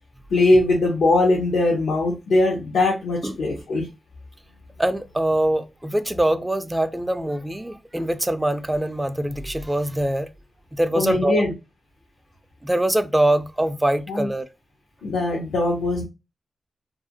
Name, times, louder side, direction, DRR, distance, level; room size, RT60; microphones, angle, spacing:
voice 1, 0.3-3.9 10.9-11.5 14.1-14.3 15.0-16.0, left 2 dB, 85° left, 0.6 m, -20 dB
voice 2, 4.8-10.3 10.7-11.4 12.6-14.5, right 1 dB, 15° right, 0.4 m, -23 dB
2.4 x 2.0 x 2.8 m
supercardioid pair, 40°, 0 cm